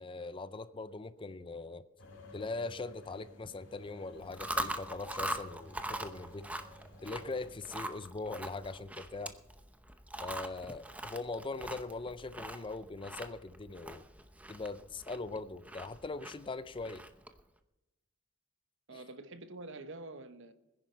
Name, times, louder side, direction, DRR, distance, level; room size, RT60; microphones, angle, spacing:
voice 1, 0.0-1.9 2.3-6.5 7.0-9.3 10.2-14.1 14.5-17.0 18.9-19.0, left 3 dB, 25° left, 0.5 m, -41 dB
sound 1, 2.0-7.6, left 2 dB, 60° left, 2.9 m, -53 dB
Chewing mastication, 4.2-17.4, right 1 dB, 5° right, 0.8 m, -42 dB
voice 2, 18.9-20.5, right 2 dB, 60° right, 1.1 m, -47 dB
21.5 x 10.5 x 4.5 m
head